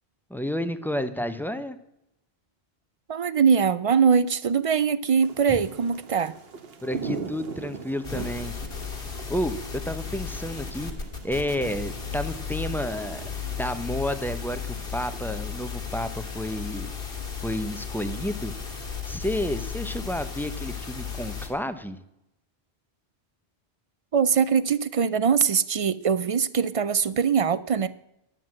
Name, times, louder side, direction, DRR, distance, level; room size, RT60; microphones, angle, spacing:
voice 1, 0.3-1.8 5.5-5.6 6.8-8.5 9.3-10.9 11.2-13.2 13.6-16.9 17.4-18.5 19.0-22.0, equal, ahead, 10 dB, 0.6 m, -31 dB
voice 2, 3.1-6.3 24.1-27.9, right 6 dB, 55° right, 15 dB, 0.4 m, -22 dB
sound 1, 5.2-15.4, right 5 dB, 75° right, 1.2 m, -41 dB
sound 2, 8.0-21.5, left 7 dB, 65° left, 2.0 m, -35 dB
11.0 x 7.6 x 7.5 m, 0.85 s
omnidirectional pair, 1.0 m